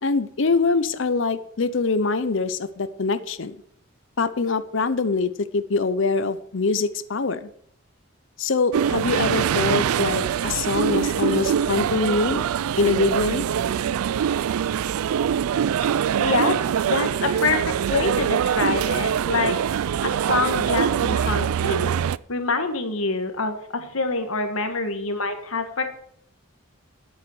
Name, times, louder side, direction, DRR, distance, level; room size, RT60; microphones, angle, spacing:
voice 1, 0.0-3.6 4.2-7.5 8.4-12.4 12.8-13.5, left 4 dB, 60° left, 13 dB, 0.6 m, -24 dB
sound 1, 8.7-22.2, right 8 dB, 90° right, 0.3 m, -23 dB
voice 2, 16.2-19.5 20.0-22.0 22.3-25.8, left 3 dB, 80° left, 7 dB, 1.7 m, -26 dB
8.8 x 8.1 x 7.9 m, 0.68 s
head